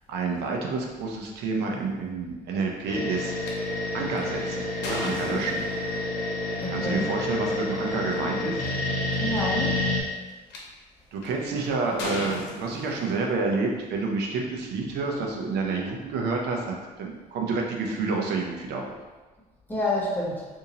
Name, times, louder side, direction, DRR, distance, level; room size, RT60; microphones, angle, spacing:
voice 1, 0.1-3.4 3.9-5.6 6.7-8.6 11.1-19.0, right 4 dB, 75° right, 0 dB, 0.6 m, -29 dB
sound 1, 2.9-10.0, left 2 dB, 55° left, 0.8 m, -29 dB
sound 2, 3.4-3.5 4.1-6.0 7.3-7.5 8.1-8.2 8.4-8.9 9.6-10.6 11.2-11.5 12.0-13.4, left 2 dB, 90° left, 0.8 m, -35 dB
voice 2, 6.6-7.2 9.2-9.8 19.7-20.4, left 1 dB, 10° left, -5 dB, 0.9 m, -28 dB
2.8 x 2.7 x 3.8 m, 1.2 s
cardioid pair, 110°, 17 cm